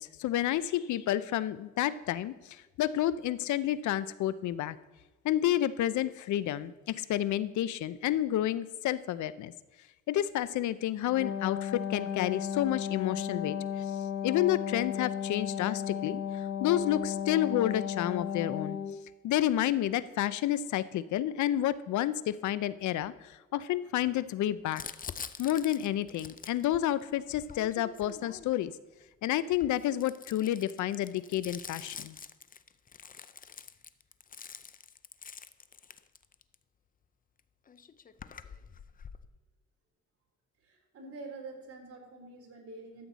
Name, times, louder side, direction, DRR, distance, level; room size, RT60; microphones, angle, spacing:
voice 1, 0.0-4.8 5.2-9.5 10.1-13.8 14.2-18.8 19.2-24.8 25.4-28.7 29.2-32.2, left 12 dB, 75° left, 16 dB, 0.6 m, -30 dB
Wind instrument woodwind instrument, 11.1-19.0, left 8 dB, 50° left, 1.0 m, -34 dB
Crumpling crinkling, 24.7-28.8 29.5-36.6 37.4-37.5 37.7-39.3, left 6 dB, 30° left, 0.5 m, -46 dB
voice 2, 40.6-43.1, right 3 dB, 50° right, 0 dB, 3.5 m, -46 dB
13.0 x 7.8 x 4.1 m, 1.2 s
cardioid pair, 90°, 30 cm